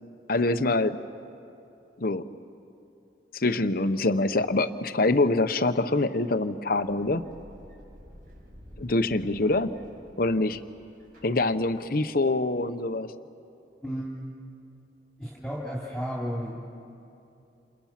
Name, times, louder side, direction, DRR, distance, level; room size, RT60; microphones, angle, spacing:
voice 1, 0.3-1.0 2.0-2.2 3.3-7.2 8.8-9.7 10.2-10.6 11.2-13.1, left 2 dB, 50° left, 10 dB, 0.9 m, -25 dB
sound 1, 6.7-12.2, equal, 50° right, 4.7 m, -51 dB
voice 2, 13.8-14.1 15.2-16.6, equal, ahead, -5 dB, 2.8 m, -33 dB
28.5 x 28.5 x 5.9 m, 2.7 s
head